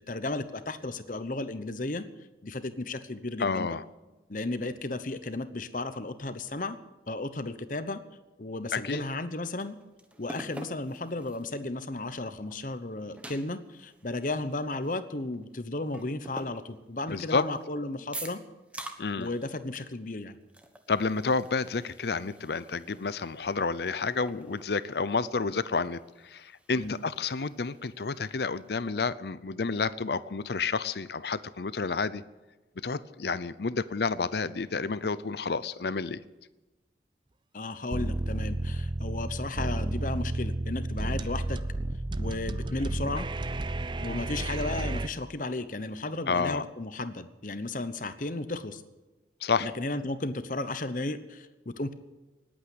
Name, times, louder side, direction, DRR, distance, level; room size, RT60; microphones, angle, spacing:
voice 1, 0.1-2.1 2.4-3.8 4.3-6.8 7.1-8.0 8.4-9.8 10.2-18.4 19.2-20.4 26.7-27.0 37.5-41.6 42.2-43.3 44.0-48.8 49.6-51.9, left 2 dB, 45° left, 12 dB, 1.0 m, -34 dB
voice 2, 3.4-3.8 8.7-9.0 17.1-17.4 19.0-19.3 20.9-32.2 32.8-36.2 46.3-46.6 49.4-49.7, left 4 dB, 65° left, 16 dB, 0.6 m, -30 dB
sound 1, 9.1-11.6 12.0-12.1 12.5-15.5 15.9-17.6 18.1-19.5 19.7-20.0 20.2-28.9, right 1 dB, 5° right, 1.2 m, -48 dB
sound 2, 37.9-45.1, right 2 dB, 25° right, 0.5 m, -32 dB
19.5 x 8.9 x 8.0 m, 1.2 s
head